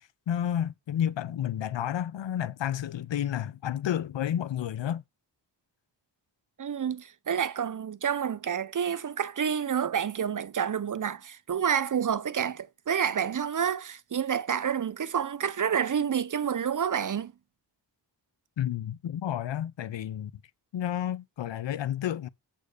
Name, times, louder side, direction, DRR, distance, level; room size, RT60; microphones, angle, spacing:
voice 1, 0.3-5.0 18.6-20.3 20.7-22.3, left 10 dB, 90° left, 0.6 m, -31 dB
voice 2, 6.6-17.3, right 8 dB, 45° right, 0.6 m, -29 dB
8.3 x 3.8 x 6.5 m
wide cardioid pair, 65°, 42 cm